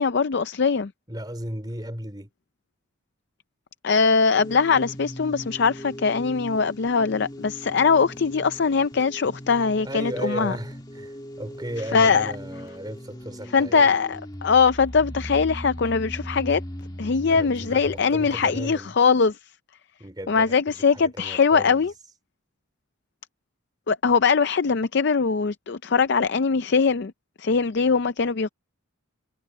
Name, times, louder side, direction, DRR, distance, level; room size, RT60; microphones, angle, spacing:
voice 1, 0.0-0.9 3.8-10.6 11.9-12.3 13.5-16.6 17.0-19.4 20.3-21.9 23.9-27.1 27.4-28.5, left 5 dB, 50° left, 0.5 m, -21 dB
voice 2, 1.1-2.3 9.8-13.9 17.3-18.9 20.0-21.9, right 1 dB, 20° right, 3.4 m, -35 dB
sound 1, 4.3-18.6, equal, 20° left, 1.8 m, -39 dB
head